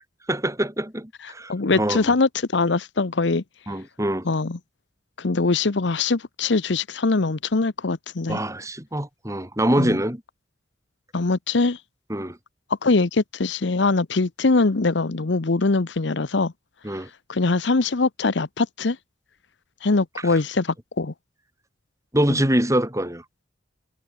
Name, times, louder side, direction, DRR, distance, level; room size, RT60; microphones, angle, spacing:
voice 1, 0.3-2.2 3.7-4.3 8.3-10.2 12.1-12.4 16.8-17.1 22.1-23.2, right 1 dB, 15° right, 4.6 m, -24 dB
voice 2, 1.5-3.4 4.2-4.6 5.2-8.4 9.8-10.0 11.1-11.8 12.8-16.5 17.3-19.0 19.8-21.1 22.3-22.4, left 3 dB, 65° left, 0.9 m, -22 dB
head